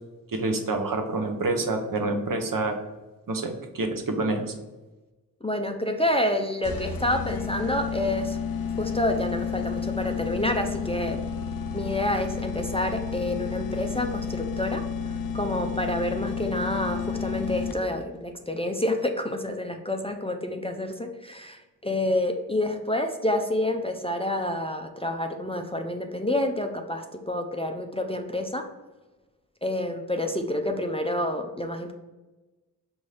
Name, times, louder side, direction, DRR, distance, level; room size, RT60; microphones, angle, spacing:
voice 1, 0.3-2.8 3.3-4.5, right 2 dB, 65° right, 4 dB, 0.7 m, -27 dB
voice 2, 5.4-8.4 8.8-11.2 11.7-28.7 29.6-31.9, left 1 dB, 15° left, 4 dB, 0.4 m, -28 dB
sound 1, 6.6-18.1, left 6 dB, 75° left, 0.5 m, -31 dB
5.4 x 2.6 x 3.2 m, 1.1 s
wide cardioid pair, 70°, 36 cm